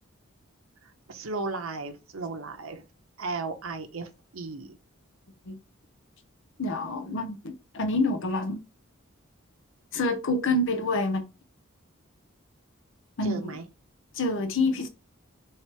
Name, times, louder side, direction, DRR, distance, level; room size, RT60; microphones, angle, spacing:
voice 1, 1.1-2.8 3.2-4.8 13.2-13.7, right 3 dB, 75° right, 0.7 m, -35 dB
voice 2, 6.6-8.6 9.9-11.2 13.2-13.5 14.1-14.9, left 2 dB, 65° left, 0.6 m, -27 dB
3.2 x 2.9 x 4.5 m
head